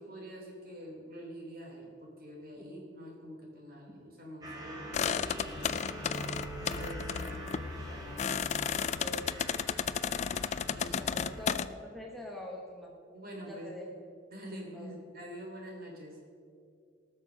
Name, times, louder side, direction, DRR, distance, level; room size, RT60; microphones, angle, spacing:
voice 1, 0.0-5.8 6.6-8.1 10.8-11.1 13.1-13.7 14.3-16.2, equal, 50° right, -1 dB, 3.1 m, -46 dB
sound 1, 4.4-11.5, right 1 dB, 20° right, 2.7 m, -44 dB
sound 2, 4.9-11.7, left 7 dB, 35° left, 0.3 m, -33 dB
voice 2, 8.7-9.3 10.9-12.9 13.5-14.0 14.7-14.9, left 1 dB, ahead, -2 dB, 1.1 m, -45 dB
19.0 x 6.5 x 6.2 m, 2.3 s
head